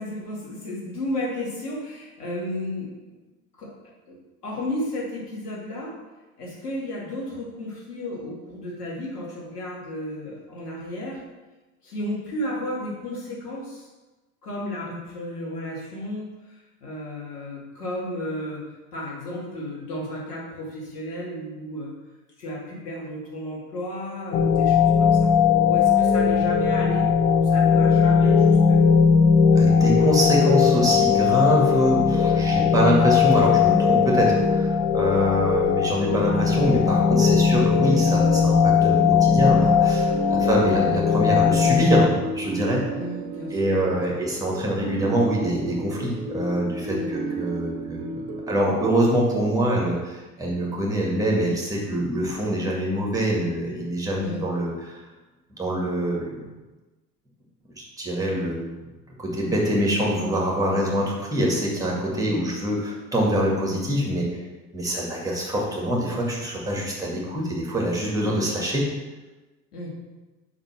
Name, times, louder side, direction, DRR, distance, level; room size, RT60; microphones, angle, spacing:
voice 1, 0.0-2.9 3.6-3.7 4.1-4.2 4.4-6.0 6.4-11.2 11.8-13.9 14.4-16.5 16.8-18.6 18.9-21.9 22.4-25.3 25.6-27.1 27.4-28.8 34.3-34.5 40.2-40.5 42.9-44.0 46.9-47.3 54.2-54.4 62.2-62.4 69.7-69.9, left 1 dB, 75° left, -5 dB, 2.4 m, -33 dB
sound 1, 24.3-42.1, left 6 dB, 30° left, 0.4 m, -19 dB
voice 2, 29.5-42.8 43.5-48.2 48.5-55.0 55.6-56.5 57.8-58.8 59.2-64.4 64.7-68.9, right 1 dB, 5° right, -3 dB, 2.2 m, -24 dB
sound 2, 38.1-48.5, right 3 dB, 45° right, 1.0 m, -34 dB
5.6 x 5.1 x 6.2 m, 1.2 s
figure-of-eight pair, 75°, 47 cm